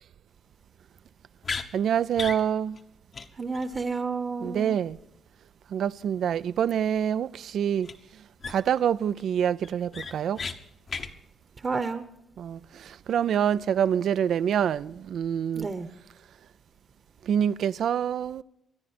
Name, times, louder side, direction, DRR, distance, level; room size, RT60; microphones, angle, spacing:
sound 1, 1.4-1.7 2.1-2.4 2.8-2.9 3.1-3.3 3.5-3.7 7.8-7.9 8.4-8.8 9.2-9.3 9.6-10.5 10.9-11.1, left 4 dB, 45° left, 1.1 m, -34 dB
voice 1, 1.7-2.8 4.4-5.0 5.7-7.9 8.5-10.4 12.4-15.7 17.2-18.4, right 9 dB, 65° right, 0.4 m, -26 dB
voice 2, 3.4-4.8 11.6-12.0 15.5-15.9, right 4 dB, 35° right, 1.0 m, -30 dB
24.5 x 10.0 x 4.3 m
cardioid pair, 90°, 0 cm